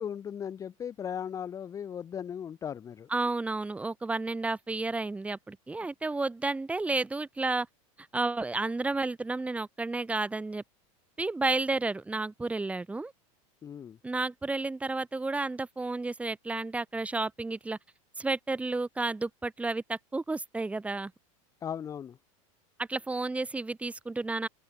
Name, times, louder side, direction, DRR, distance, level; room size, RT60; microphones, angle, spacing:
voice 1, 0.0-3.1 13.6-14.0 21.6-22.2, left 8 dB, 20° left, 0.7 m, -37 dB
voice 2, 3.1-7.7 8.1-10.6 11.2-13.1 14.0-17.8 18.2-21.1 22.8-24.5, right 3 dB, 5° right, 1.9 m, -31 dB
supercardioid pair, 150°, 18 cm